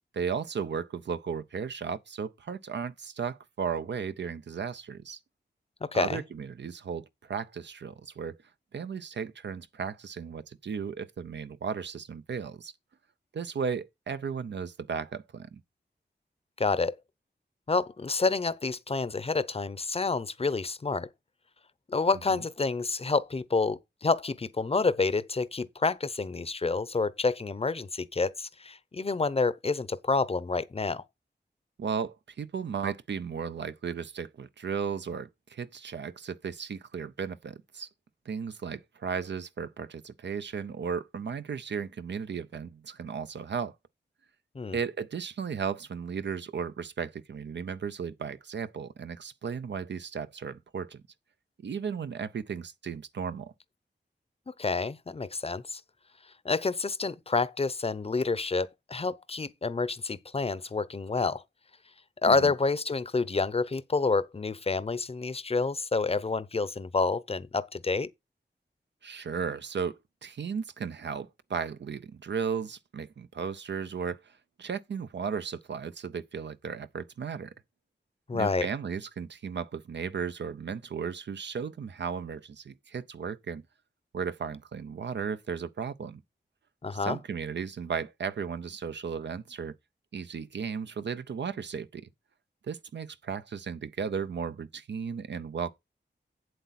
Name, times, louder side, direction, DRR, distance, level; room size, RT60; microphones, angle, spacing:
voice 1, 0.1-5.2 5.9-8.4 8.7-12.7 13.3-15.6 22.3-22.4 31.8-37.9 38.3-43.7 44.7-51.0 51.6-53.5 62.3-62.5 69.0-77.5 78.3-83.6 84.1-86.2 86.9-89.7 90.1-92.1 92.7-95.7, right 6 dB, 70° right, 0.6 m, -35 dB
voice 2, 5.8-6.2 16.6-17.0 17.7-21.1 21.9-31.0 44.5-44.8 54.6-55.8 56.4-61.4 62.2-68.1 78.3-78.7 86.8-87.2, left 4 dB, 30° left, 0.7 m, -28 dB
8.1 x 7.8 x 4.2 m
wide cardioid pair, 105°, 19 cm